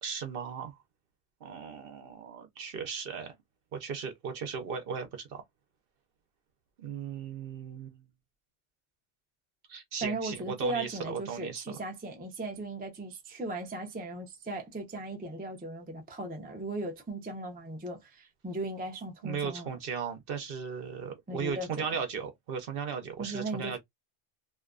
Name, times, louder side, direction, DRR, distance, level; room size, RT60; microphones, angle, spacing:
voice 1, 0.0-0.7 1.4-3.3 3.7-5.4 6.8-8.0 9.7-11.8 19.2-23.8, right 6 dB, 60° right, 0.7 m, -37 dB
voice 2, 10.0-19.7 21.3-22.0 23.2-23.8, right 2 dB, 15° right, 0.3 m, -37 dB
2.5 x 2.2 x 2.3 m
omnidirectional pair, 1.2 m